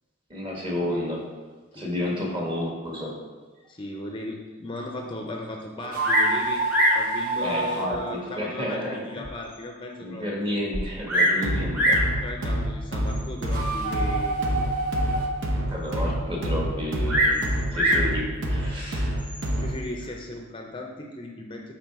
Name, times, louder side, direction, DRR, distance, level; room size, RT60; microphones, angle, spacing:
voice 1, 0.3-1.2 1.7-3.1 7.4-9.3 10.0-11.9 15.6-19.2, left 1 dB, 25° right, -2 dB, 1.5 m, -31 dB
voice 2, 1.7-2.1 3.7-6.6 6.9-10.3 12.2-14.4 15.9-16.1 19.6-21.7, left 1 dB, 25° left, 2 dB, 0.6 m, -36 dB
sound 1, 5.8-9.1 13.4-15.6, right 2 dB, 45° right, 0.9 m, -29 dB
Bird vocalization bird call bird song, 6.0-6.4 6.7-7.1 7.9-8.0 8.6-8.7 9.2-9.3 9.5-9.6 10.7-11.4 11.7-12.1 13.1-13.4 17.1-18.1 19.2-19.6, equal, 10° right, 0.9 m, -23 dB
sound 2, 11.4-19.9, equal, 70° right, 0.9 m, -28 dB
8.1 x 3.8 x 4.6 m, 1.3 s
head